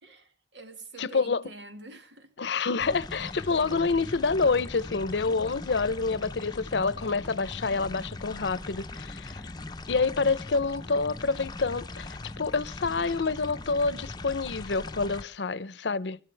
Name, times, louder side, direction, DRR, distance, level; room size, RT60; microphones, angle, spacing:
voice 1, 0.0-2.3, right 2 dB, 80° right, 2.0 m, -47 dB
voice 2, 1.0-1.4 2.4-9.4 9.9-16.2, left 4 dB, 75° left, 0.7 m, -27 dB
sound 1, 2.8-15.2, left 2 dB, 25° left, 0.7 m, -40 dB
30.0 x 12.5 x 3.4 m
head